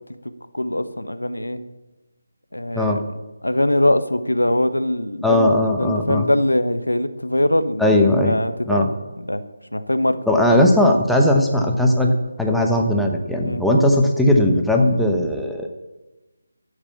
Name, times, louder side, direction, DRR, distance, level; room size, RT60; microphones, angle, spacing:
voice 1, 0.5-1.6 2.5-2.9 3.4-8.9 9.2-9.4 9.7-10.2 10.5-10.6 13.5-13.6, left 1 dB, 80° left, 11 dB, 1.1 m, -22 dB
voice 2, 5.2-6.3 7.8-8.4 8.7-8.9 10.3-12.1 12.4-15.7, left 1 dB, ahead, 1 dB, 1.0 m, -18 dB
11.5 x 8.0 x 8.3 m, 1.1 s
figure-of-eight pair, 155°, 0 cm